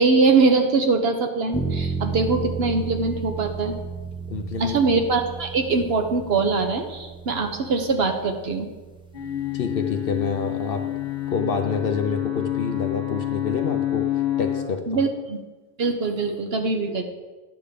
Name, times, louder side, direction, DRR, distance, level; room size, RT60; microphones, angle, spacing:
voice 1, 0.0-3.7 4.6-8.7 14.9-15.4 15.8-17.0, right 4 dB, 60° right, 5 dB, 1.0 m, -22 dB
sound 1, 1.5-11.3, right 5 dB, 5° right, 0.5 m, -34 dB
voice 2, 4.3-4.8 9.5-10.8 11.3-14.1 14.4-15.0, left 5 dB, 60° left, 6 dB, 0.7 m, -27 dB
sound 2, 9.1-14.6, left 13 dB, 40° left, 1.6 m, -28 dB
10.0 x 3.5 x 6.7 m, 1.2 s
omnidirectional pair, 1.2 m